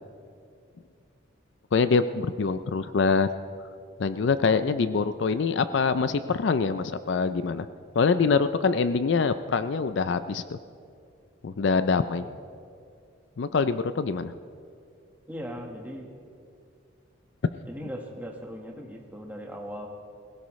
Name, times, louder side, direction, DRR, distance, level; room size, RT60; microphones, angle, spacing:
voice 1, 1.7-3.3 4.0-7.7 8.0-10.6 11.4-12.2 13.4-14.3, left 4 dB, 60° left, 12 dB, 0.4 m, -24 dB
voice 2, 15.3-16.1 17.6-19.9, equal, 10° right, 1 dB, 1.4 m, -38 dB
21.0 x 16.5 x 3.1 m, 2.3 s
head